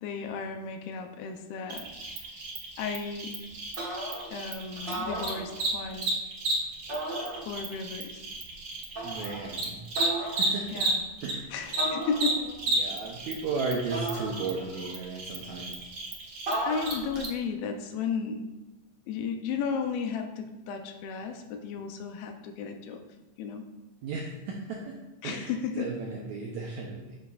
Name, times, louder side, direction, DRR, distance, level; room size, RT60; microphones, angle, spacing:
voice 1, 0.0-1.9 2.8-3.4 4.3-6.2 7.3-8.3 10.7-11.0 11.5-12.5 16.7-18.5 19.1-23.0 23.4-23.7 25.2-25.9, left 5 dB, 85° left, 5 dB, 2.5 m, -34 dB
Cricket, 1.7-11.3 11.6-17.3, right 2 dB, 60° right, 1.2 m, -33 dB
sound 1, 3.8-4.4 4.8-5.9 6.9-7.8 9.0-9.5 10.0-10.5 11.8-12.6 13.9-14.9 16.5-17.2, right 1 dB, 35° right, 2.2 m, -35 dB
voice 2, 9.0-9.8 10.2-10.8 11.2-11.5 12.7-15.7 24.0-25.0 25.2-27.2, right 4 dB, 85° right, -1 dB, 1.6 m, -35 dB
10.0 x 7.0 x 2.4 m, 1.1 s
omnidirectional pair, 4.3 m